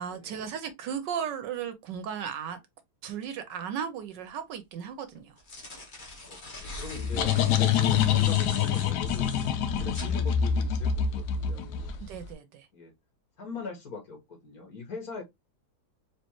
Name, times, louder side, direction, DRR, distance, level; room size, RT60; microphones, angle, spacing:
voice 1, 0.0-2.6 3.0-5.4 12.0-12.7, right 8 dB, 75° right, 1.2 m, -36 dB
sound 1, 4.1-4.2 5.2-10.1, left 2 dB, 30° left, 1.2 m, -44 dB
sound 2, 6.7-12.2, left 8 dB, 70° left, 1.1 m, -26 dB
voice 2, 6.8-12.0 12.7-12.9 13.4-15.2, left 3 dB, 50° left, 1.9 m, -41 dB
4.4 x 2.8 x 2.9 m
omnidirectional pair, 2.1 m